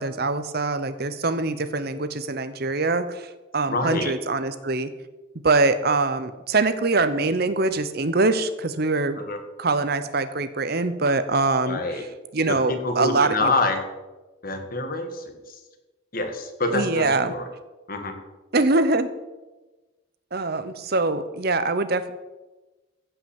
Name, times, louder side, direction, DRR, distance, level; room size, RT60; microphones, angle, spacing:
voice 1, 0.0-4.9 5.4-9.2 9.6-12.1 12.3-13.5 16.7-17.3 18.5-19.1 20.3-22.1, right 3 dB, 50° right, 12 dB, 0.8 m, -23 dB
voice 2, 3.7-4.1 9.2-9.4 11.6-12.0 12.7-13.8 14.4-15.6 16.1-17.5 17.9-18.1, left 2 dB, 45° left, 5 dB, 1.7 m, -26 dB
15.0 x 5.8 x 7.2 m, 1.2 s
head